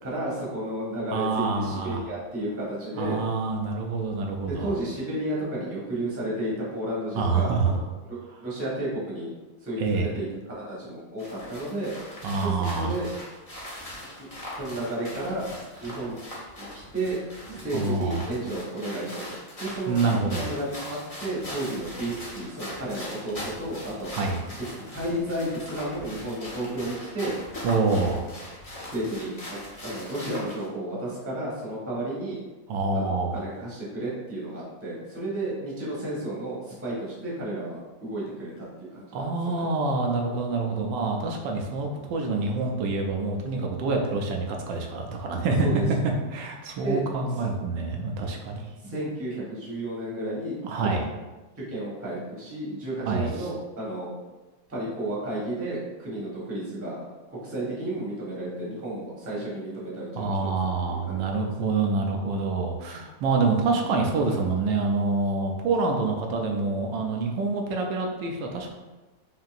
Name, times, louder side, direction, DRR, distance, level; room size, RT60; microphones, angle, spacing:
voice 1, 0.0-3.2 4.5-9.3 9.6-11.9 12.4-13.1 14.2-15.4 15.8-16.2 16.6-17.2 17.6-20.1 20.4-24.2 24.7-27.3 27.9-28.1 28.9-29.3 29.8-32.4 32.9-38.7 38.9-39.7 45.6-45.8 46.8-47.0 47.3-47.4 48.8-50.6 50.8-51.0 51.7-54.1 54.7-57.0 57.3-61.7, right 1 dB, 10° right, -7 dB, 0.8 m, -32 dB
voice 2, 1.1-2.0 3.0-4.7 7.1-7.7 9.8-10.1 12.2-12.9 17.5-18.3 19.9-20.5 24.1-24.4 27.6-28.2 32.7-33.4 39.1-45.7 46.3-48.7 50.6-51.0 53.1-53.3 60.2-68.7, right 3 dB, 85° right, 1 dB, 1.3 m, -26 dB
sound 1, 11.2-30.7, left 1 dB, 30° left, 0.6 m, -40 dB
5.3 x 2.8 x 2.4 m, 1.2 s
omnidirectional pair, 2.0 m